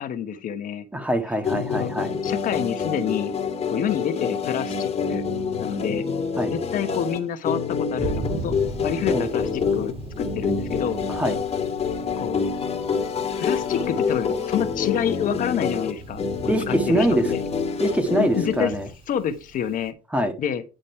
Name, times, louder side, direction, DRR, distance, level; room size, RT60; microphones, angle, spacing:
voice 1, 0.0-0.9 1.8-1.9 2.2-3.3 3.7-5.2 5.6-6.1 6.5-8.6 8.8-11.0 12.2-12.5 13.4-16.2 16.7-17.4 18.2-18.7 19.1-19.9 20.4-20.6, left 8 dB, 55° left, 8 dB, 1.2 m, -28 dB
voice 2, 0.9-2.2 6.4-6.5 9.1-9.3 11.1-11.4 16.5-17.3 17.8-18.9 20.1-20.3, right 1 dB, 10° right, 7 dB, 1.5 m, -23 dB
sound 1, 1.4-18.9, left 5 dB, 40° left, 1.8 m, -27 dB
Thunder, 8.0-19.9, right 2 dB, 35° right, 1.8 m, -38 dB
10.0 x 5.2 x 4.4 m, 0.31 s
supercardioid pair, 95°, 17 cm